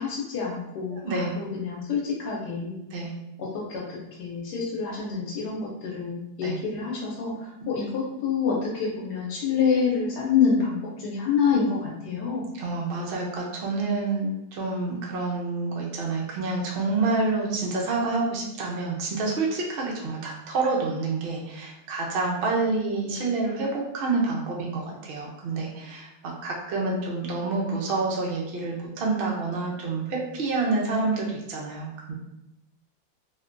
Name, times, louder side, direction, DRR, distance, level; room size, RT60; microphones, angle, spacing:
voice 1, 0.0-2.8 3.4-12.5, left 6 dB, 75° left, -4 dB, 1.2 m, -27 dB
voice 2, 0.9-1.3 2.9-3.1 6.4-6.6 12.6-32.1, right 3 dB, 90° right, -2 dB, 0.5 m, -28 dB
3.2 x 2.2 x 2.4 m, 0.88 s
omnidirectional pair, 1.8 m